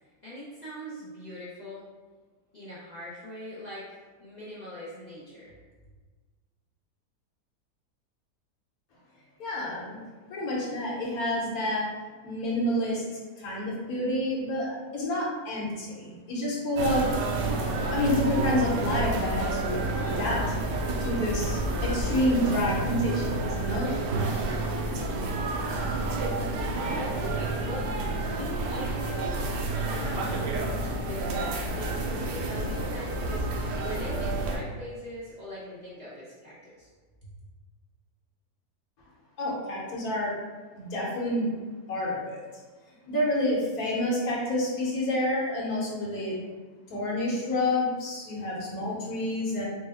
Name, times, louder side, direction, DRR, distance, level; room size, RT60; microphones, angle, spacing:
voice 1, 0.2-1.8 2.5-3.9 4.2-5.5 27.0-27.9 28.3-29.2 29.8-36.9 37.2-37.3, left 1 dB, 45° left, -9 dB, 0.5 m, -41 dB
voice 2, 9.4-10.0 10.3-11.9 12.2-13.0 13.4-17.0 17.9-19.8 20.1-20.4 21.0-23.9 39.4-40.3 40.7-41.5 41.9-42.4 43.1-46.3 46.9-49.6, left 1 dB, 65° left, -5 dB, 1.4 m, -28 dB
sound 1, 16.8-34.6, right 2 dB, 90° right, 1.2 m, -29 dB
4.3 x 2.2 x 3.4 m, 1.4 s
omnidirectional pair, 1.8 m